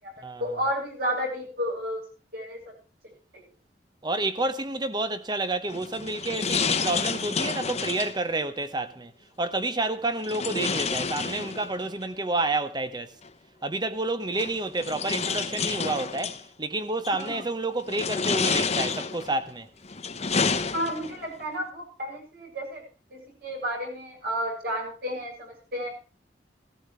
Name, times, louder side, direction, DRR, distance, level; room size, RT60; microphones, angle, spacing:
voice 1, 0.4-2.0 2.3-2.7 3.3-3.4 17.1-17.4 20.7-22.8 23.1-25.9, equal, 60° right, 7.2 m, -32 dB
voice 2, 4.0-9.1 9.4-13.1 13.6-19.7, right 2 dB, 25° right, 1.0 m, -29 dB
sound 1, 5.7-8.2 10.2-11.9 13.2-13.3 14.3-16.4 17.0-17.4 17.9-19.3 19.8-21.3, left 5 dB, 40° left, 1.0 m, -29 dB
16.0 x 14.5 x 3.3 m
head